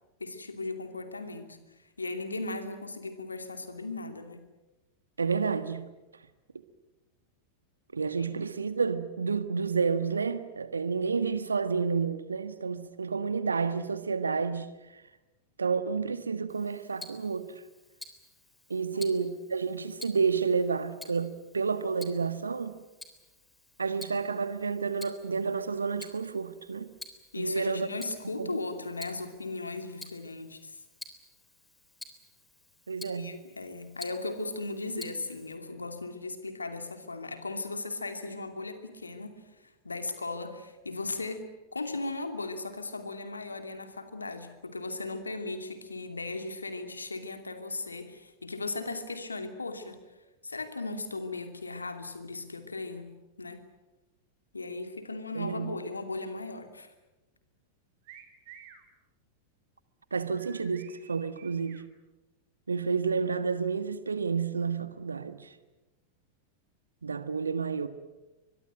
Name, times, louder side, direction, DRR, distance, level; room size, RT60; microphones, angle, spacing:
voice 1, 0.2-4.4 8.2-8.3 18.9-19.1 27.3-30.8 33.1-50.0 50.4-53.1 53.4-53.6 54.5-56.9, left 3 dB, 80° left, 2.7 m, -37 dB
voice 2, 5.2-5.9 7.9-15.0 15.6-17.6 18.7-22.8 23.8-26.9 27.4-27.9 28.4-28.5 32.9-33.3 55.3-55.7 60.1-61.8 62.7-65.5 67.0-67.9, right 5 dB, 75° right, 1.5 m, -30 dB
Tick-tock, 16.5-35.5, left 2 dB, 5° left, 3.5 m, -51 dB
sound 1, 58.1-58.8 60.4-61.8, right 9 dB, 50° right, 4.4 m, -52 dB
24.0 x 22.5 x 9.2 m
figure-of-eight pair, 90°, 0 cm